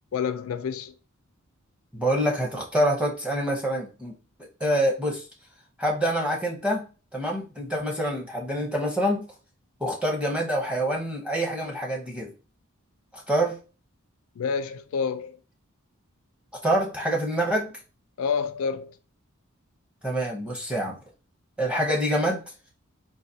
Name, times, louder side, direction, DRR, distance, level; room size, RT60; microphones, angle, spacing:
voice 1, 0.1-0.9 14.4-15.4 18.2-18.9, left 6 dB, 80° left, 0.3 m, -28 dB
voice 2, 1.9-4.1 4.4-5.3 5.8-6.9 7.1-9.2 9.8-12.3 13.1-13.6 16.6-17.7 20.0-21.0 21.6-22.4, equal, 5° right, 0.7 m, -26 dB
3.9 x 2.5 x 2.7 m
head